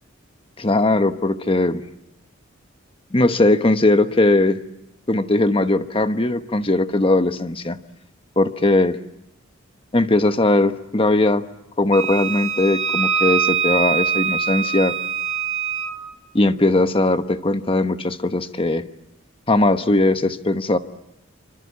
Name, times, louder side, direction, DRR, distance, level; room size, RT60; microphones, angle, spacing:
voice 1, 0.6-1.8 3.1-4.6 5.1-7.8 8.4-9.0 9.9-11.4 11.8-14.9 16.3-18.8 19.5-20.8, left 2 dB, 25° left, 9 dB, 1.1 m, -19 dB
Wind instrument woodwind instrument, 11.9-15.9, right 7 dB, 35° right, 3.0 m, -23 dB
27.0 x 25.0 x 8.4 m, 0.90 s
head